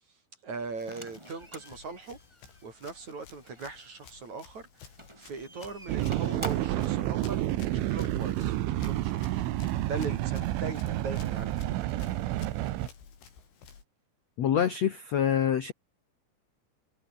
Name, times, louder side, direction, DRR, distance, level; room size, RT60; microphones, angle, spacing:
voice 1, 0.4-2.2 2.6-7.4 7.7-9.5 9.9-12.2, right 4 dB, 40° right, 6.3 m, -40 dB
Run, 0.6-13.8, left 6 dB, 90° left, 8.3 m, -52 dB
sound 1, 0.9-3.9 4.9-6.9, right 1 dB, 5° right, 4.3 m, -46 dB
sound 2, 5.9-12.9, right 15 dB, 90° right, 3.8 m, -30 dB
voice 2, 14.4-15.7, left 9 dB, 75° left, 1.5 m, -26 dB
omnidirectional pair, 5.5 m